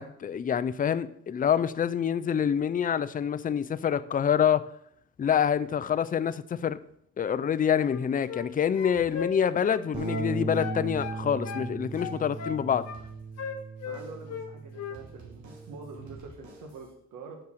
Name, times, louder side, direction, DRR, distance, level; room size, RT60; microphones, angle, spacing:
voice 1, 0.0-4.6 5.2-6.8 7.2-12.9, left 8 dB, 30° left, 14 dB, 0.4 m, -26 dB
sound 1, 7.8-8.5 8.7-10.3 10.6-11.7 12.0-13.0 13.4-14.5 14.7-15.0, left 6 dB, 55° left, 1.4 m, -37 dB
sound 2, 8.9-9.6 9.9-10.4 10.8-11.6 11.9-12.4 12.9-13.6 13.9-14.4 14.9-16.9, right 2 dB, 70° right, 2.8 m, -53 dB
Bass guitar, 9.9-16.2, right 4 dB, 20° right, 1.0 m, -37 dB
voice 2, 13.8-17.4, right 4 dB, 90° right, 3 dB, 1.4 m, -45 dB
6.4 x 5.5 x 6.8 m, 0.70 s
cardioid pair, 90°, 30 cm